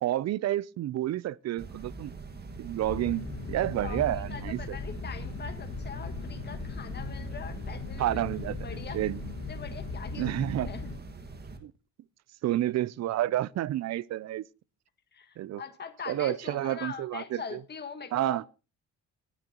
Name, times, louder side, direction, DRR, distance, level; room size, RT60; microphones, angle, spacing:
voice 1, 0.0-2.1 2.6-4.6 8.0-8.6 8.9-9.2 10.2-10.7 11.6-11.7 12.4-14.4 15.4-15.6 16.1-17.6 18.1-18.4, right 13 dB, 60° right, 0.5 m, -30 dB
sound 1, 1.6-11.6, right 3 dB, 35° right, 1.9 m, -44 dB
sound 2, 2.8-11.0, left 4 dB, 55° left, 2.0 m, -38 dB
voice 2, 3.8-8.2 8.6-9.0 9.5-10.3 10.6-10.9 15.1-18.5, left 6 dB, 35° left, 1.5 m, -42 dB
20.5 x 9.1 x 3.0 m
cardioid pair, 90°, 30 cm